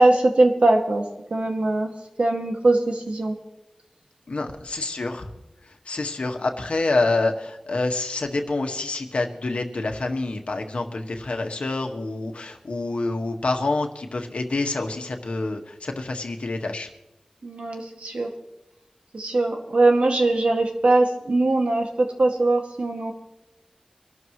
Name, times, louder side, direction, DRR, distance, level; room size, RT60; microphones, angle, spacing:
voice 1, 0.0-1.9 2.2-3.4 17.4-18.3 19.1-23.1, right 2 dB, 80° right, 2 dB, 2.2 m, -21 dB
voice 2, 4.3-5.3 5.8-16.9, left 2 dB, 85° left, 4 dB, 1.7 m, -27 dB
25.0 x 12.5 x 3.2 m, 0.93 s
wide cardioid pair, 65°, 2 cm